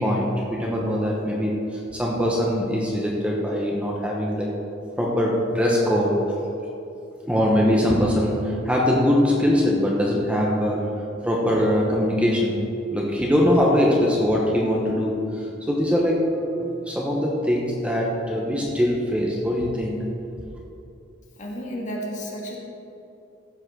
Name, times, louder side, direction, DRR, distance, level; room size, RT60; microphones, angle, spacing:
voice 1, 0.0-4.6 5.0-6.2 7.2-10.9 11.2-12.6 12.9-20.0, equal, 5° right, -2 dB, 1.1 m, -22 dB
voice 2, 21.4-22.6, equal, 40° left, -2 dB, 1.9 m, -32 dB
15.0 x 5.8 x 6.2 m, 2.8 s
head